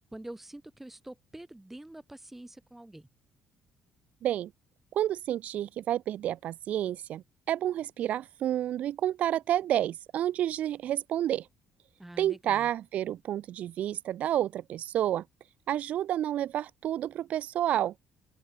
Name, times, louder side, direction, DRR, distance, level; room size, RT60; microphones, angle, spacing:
voice 1, 0.1-3.1 12.0-12.7, right 1 dB, 10° right, 6.5 m, -46 dB
voice 2, 4.9-11.5 12.2-15.2 15.7-17.9, right 11 dB, 65° right, 0.6 m, -30 dB
open air
cardioid pair, 85°, 3 cm